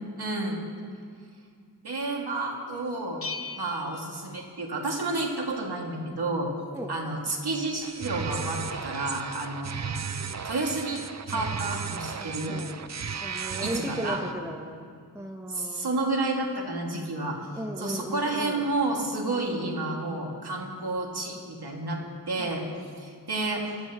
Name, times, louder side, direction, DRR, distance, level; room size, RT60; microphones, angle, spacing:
voice 1, 0.2-0.6 1.8-3.2 3.6-6.5 6.9-10.1 10.4-11.0 11.3-12.6 13.6-14.2 15.5-17.4 17.8-22.0 22.3-22.6 23.0-23.7, right 2 dB, 65° right, -1 dB, 2.2 m, -30 dB
Bell, 3.2-5.0, left 4 dB, 35° left, 0.7 m, -40 dB
sound 1, 7.8-14.3, right 6 dB, 40° right, 0.5 m, -35 dB
voice 2, 11.3-12.8 13.2-14.9 15.1-15.9 17.5-18.7 22.4-22.6, right 1 dB, 5° right, 2 dB, 0.9 m, -37 dB
23.0 x 13.0 x 3.0 m, 2.3 s
wide cardioid pair, 85°, 41 cm